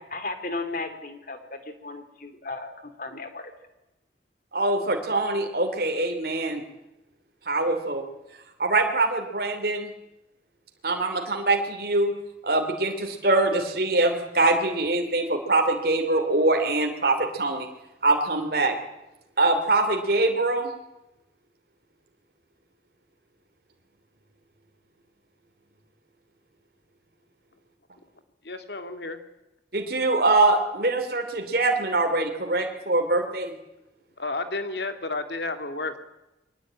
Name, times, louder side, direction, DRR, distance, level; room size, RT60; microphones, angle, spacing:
voice 1, 0.0-3.5, left 3 dB, 50° left, 8 dB, 2.8 m, -35 dB
voice 2, 4.5-6.6 7.5-8.0 8.6-9.9 10.8-12.1 12.4-17.7 18.0-18.7 19.4-20.7 29.7-33.5, right 2 dB, 55° right, 4 dB, 2.9 m, -23 dB
voice 3, 28.4-29.2 34.2-36.0, left 3 dB, 70° left, 8 dB, 2.3 m, -31 dB
22.5 x 18.5 x 8.8 m, 0.95 s
head